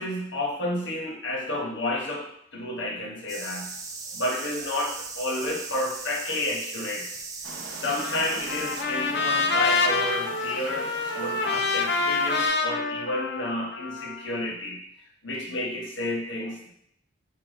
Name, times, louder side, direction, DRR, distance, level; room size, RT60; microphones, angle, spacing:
voice 1, 0.0-2.3 2.5-3.7 4.1-7.1 7.7-14.8 15.2-16.7, left 1 dB, 75° left, -1 dB, 1.1 m, -31 dB
sound 1, 3.3-8.8, right 4 dB, 15° right, 0.4 m, -38 dB
sound 2, 7.4-12.5, right 3 dB, 80° right, 0.8 m, -42 dB
Trumpet, 8.0-14.2, left 4 dB, 55° left, 0.5 m, -27 dB
4.8 x 2.2 x 4.8 m, 0.69 s
head